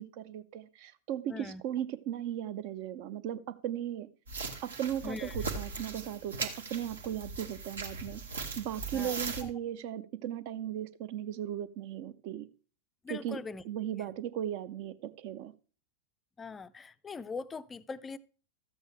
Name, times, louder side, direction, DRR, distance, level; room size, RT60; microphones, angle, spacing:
voice 1, 0.0-4.1 4.6-8.2 8.6-12.5 13.1-13.4 13.6-15.5, right 11 dB, 45° right, 0.6 m, -37 dB
voice 2, 1.3-1.6 5.0-5.4 8.9-9.5 13.0-13.6 16.4-18.2, left 4 dB, 15° left, 0.4 m, -41 dB
sound 1, 4.3-9.4, right 4 dB, 70° right, 1.2 m, -39 dB
12.5 x 8.1 x 3.1 m
figure-of-eight pair, 90°, 0 cm